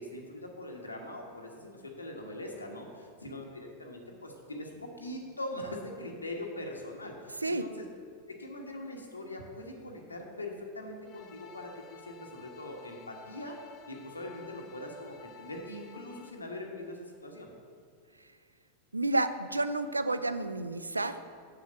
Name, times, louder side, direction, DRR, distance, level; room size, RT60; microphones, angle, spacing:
voice 1, 0.0-7.8 8.3-13.6 13.9-17.5, left 1 dB, 80° left, 1 dB, 1.3 m, -42 dB
sound 1, 11.0-16.3, left 7 dB, 35° left, 0.8 m, -53 dB
voice 2, 18.9-21.2, right 2 dB, 80° right, 12 dB, 0.5 m, -30 dB
7.7 x 6.9 x 7.8 m, 2.1 s
figure-of-eight pair, 90°, 0 cm